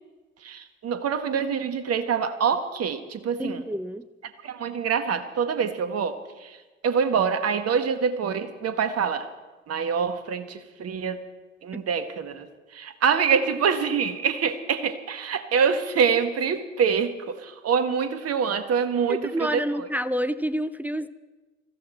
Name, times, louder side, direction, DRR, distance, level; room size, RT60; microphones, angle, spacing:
voice 1, 0.4-3.7 4.4-9.3 9.7-11.2 11.6-19.9, right 6 dB, 45° right, 10 dB, 1.5 m, -25 dB
voice 2, 3.4-4.1 11.7-11.8 19.1-21.1, equal, 5° right, 13 dB, 0.5 m, -28 dB
20.5 x 15.0 x 4.3 m, 1.2 s
figure-of-eight pair, 50°, 35 cm